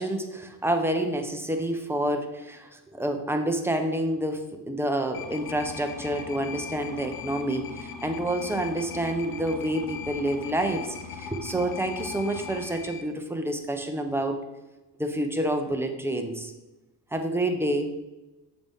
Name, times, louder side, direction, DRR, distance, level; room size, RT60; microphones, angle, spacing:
voice 1, 0.0-14.4 15.0-16.5 17.1-17.9, right 1 dB, 5° right, 5 dB, 0.9 m, -28 dB
sound 1, 5.1-13.0, left 7 dB, 50° left, 0.8 m, -39 dB
6.7 x 4.0 x 3.7 m, 1.1 s
supercardioid pair, 65°, 46 cm